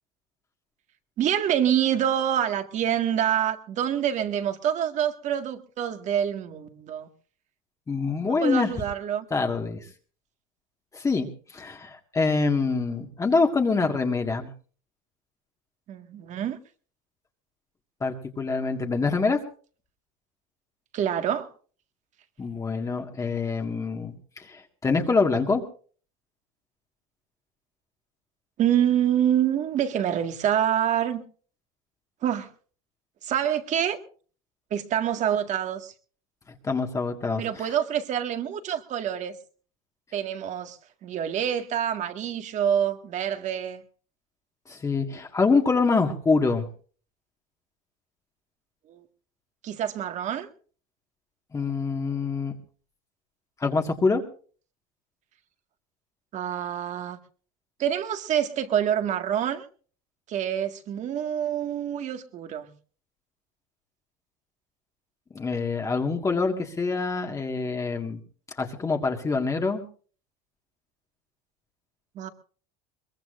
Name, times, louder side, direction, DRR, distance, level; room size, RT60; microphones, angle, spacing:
voice 1, 1.2-7.1 8.4-9.3 15.9-16.6 20.9-21.5 28.6-31.2 32.2-32.5 33.2-34.0 34.7-35.9 37.4-39.4 40.1-43.8 48.9-49.0 49.6-50.5 56.3-57.2 57.8-59.7 60.3-62.7 72.2-72.3, right 9 dB, 45° right, 1.9 m, -26 dB
voice 2, 7.9-8.7 9.3-9.9 10.9-14.5 18.0-19.4 22.4-25.6 36.6-37.7 44.7-46.7 51.5-52.5 53.6-54.2 65.3-68.2 68.6-69.8, left 4 dB, 20° left, 1.8 m, -25 dB
22.5 x 21.5 x 2.6 m
supercardioid pair, 125°, 17 cm